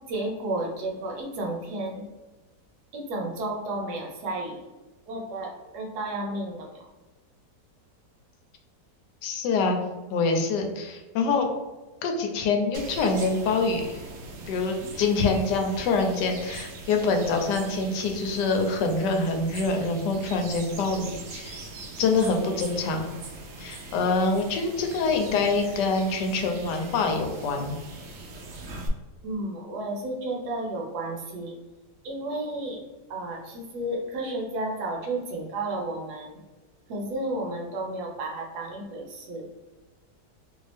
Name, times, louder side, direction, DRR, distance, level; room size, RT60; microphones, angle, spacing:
voice 1, 0.1-2.1 2.9-4.6 5.1-6.8 29.2-31.5 32.0-32.8 33.1-36.4 36.9-39.5, right 2 dB, 70° right, 0 dB, 1.2 m, -32 dB
voice 2, 9.2-9.8 10.1-11.5 12.0-14.0 14.5-21.6 22.0-23.0 23.6-27.7, left 3 dB, 80° left, 4 dB, 1.2 m, -25 dB
sound 1, 12.7-28.9, right 2 dB, 85° right, 0.6 m, -41 dB
2.9 x 2.6 x 3.3 m, 1.2 s
omnidirectional pair, 1.8 m